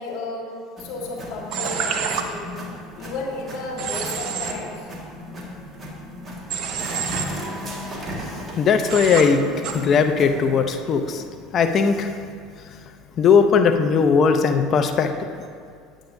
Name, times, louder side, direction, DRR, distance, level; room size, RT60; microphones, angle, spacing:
voice 1, 0.0-2.5 3.0-4.9, left 2 dB, 65° left, -1 dB, 1.5 m, -33 dB
sound 1, 0.8-10.6, equal, 25° right, 1.7 m, -36 dB
Human voice / Train, 1.5-2.2 3.8-4.5 6.5-7.2 8.9-9.2 9.6-9.7, right 7 dB, 55° right, 0.7 m, -27 dB
voice 2, 8.6-11.2 11.5-12.2 13.2-15.3, left 5 dB, 45° left, 7 dB, 0.6 m, -18 dB
8.8 x 8.6 x 2.7 m, 2.2 s
hypercardioid pair, 85°, 0 cm